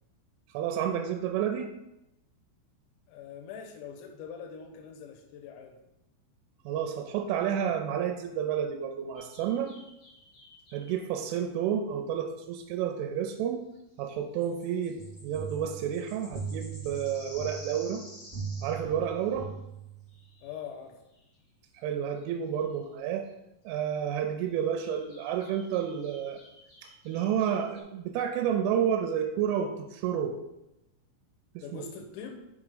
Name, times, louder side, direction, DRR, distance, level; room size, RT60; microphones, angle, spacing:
voice 1, 0.5-1.7 6.7-9.7 10.7-13.6 14.0-18.0 18.6-19.5 21.7-23.3 23.7-26.4 26.8-30.4 31.6-31.8, right 8 dB, 85° right, 5 dB, 3.0 m, -30 dB
voice 2, 3.1-5.8 20.4-21.0 31.6-32.4, left 7 dB, 80° left, 3 dB, 2.7 m, -43 dB
sound 1, 9.1-11.0 13.3-13.4 13.7-13.8 14.0-19.5 20.1-20.7 21.0-21.4 21.7-21.8 22.1-23.0 23.2-23.3 24.5-27.8, left 1 dB, 40° left, 1.3 m, -53 dB
sound 2, 14.9-20.2, right 5 dB, 50° right, 0.5 m, -40 dB
7.3 x 3.6 x 5.0 m, 0.89 s
omnidirectional pair, 5.8 m